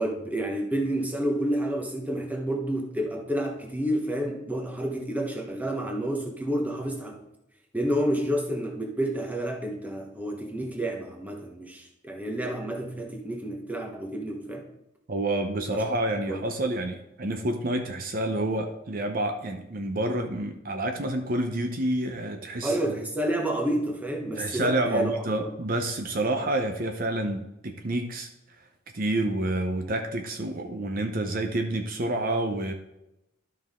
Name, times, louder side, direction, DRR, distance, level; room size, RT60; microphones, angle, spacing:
voice 1, 0.0-7.2 7.7-14.7 15.7-15.8 16.3-16.4 22.6-25.3, right 1 dB, 10° right, 1 dB, 1.2 m, -29 dB
voice 2, 15.1-23.0 24.4-28.3 28.9-32.7, right 1 dB, 50° right, 5 dB, 0.7 m, -28 dB
12.5 x 5.6 x 3.7 m, 0.88 s
head